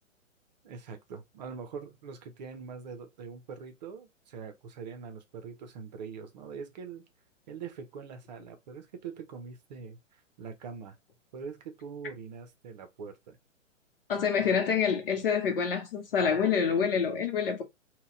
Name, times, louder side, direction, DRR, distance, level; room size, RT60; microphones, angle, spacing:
voice 1, 0.6-7.0 7.5-10.9 11.3-13.4, right 5 dB, 35° right, 0.8 m, -43 dB
voice 2, 14.1-17.6, left 6 dB, 45° left, 0.9 m, -27 dB
4.0 x 2.3 x 3.6 m
figure-of-eight pair, 120°, 39 cm